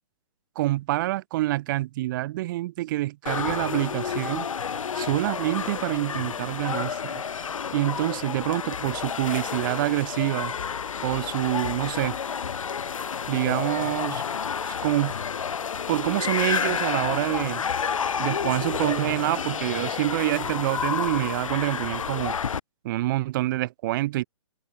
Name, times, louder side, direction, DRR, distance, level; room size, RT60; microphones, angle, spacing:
voice 1, 0.6-4.5 4.9-7.2 7.7-10.5 11.0-12.2 13.3-14.2 14.7-15.1 15.9-17.7 18.2-22.4 22.8-24.2, right 16 dB, 35° right, 3.7 m, -26 dB
sound 1, 3.2-22.6, left 7 dB, 75° left, 6.7 m, -30 dB
hypercardioid pair, 155°, 17 cm